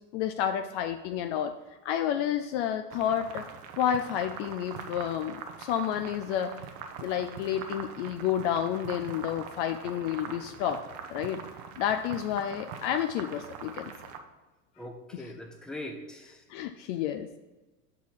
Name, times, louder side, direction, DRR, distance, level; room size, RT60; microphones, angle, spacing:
voice 1, 0.1-1.5 1.8-3.4 3.8-6.5 7.0-10.8 11.1-11.4 11.8-13.9 15.1-15.3 16.5-17.3, left 10 dB, 50° left, 8 dB, 0.5 m, -30 dB
sound 1, 2.9-14.2, right 7 dB, 45° right, 0.8 m, -43 dB
voice 2, 14.8-16.4, left 1 dB, ahead, 3 dB, 0.7 m, -41 dB
5.4 x 4.6 x 6.1 m, 1.2 s
hypercardioid pair, 100°, 48 cm